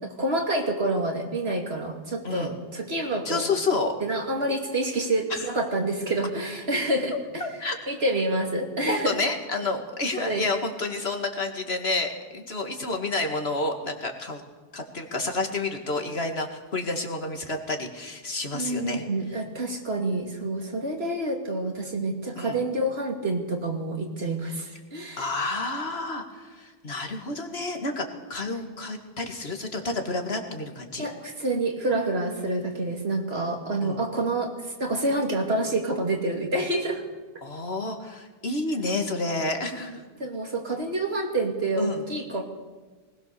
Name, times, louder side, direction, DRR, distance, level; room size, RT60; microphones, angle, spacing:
voice 1, 0.0-3.4 4.0-7.4 7.9-9.2 10.2-10.5 18.5-25.3 28.5-28.7 31.0-37.0 39.8-42.4, right 2 dB, 75° right, 2 dB, 2.9 m, -28 dB
voice 2, 3.2-3.9 5.3-5.5 7.1-7.8 8.9-14.4 14.7-19.0 22.4-22.6 25.2-31.1 33.8-34.0 37.4-40.0 41.8-42.0, left 2 dB, 75° left, 4 dB, 2.4 m, -30 dB
20.0 x 19.5 x 6.9 m, 1.3 s
omnidirectional pair, 1.1 m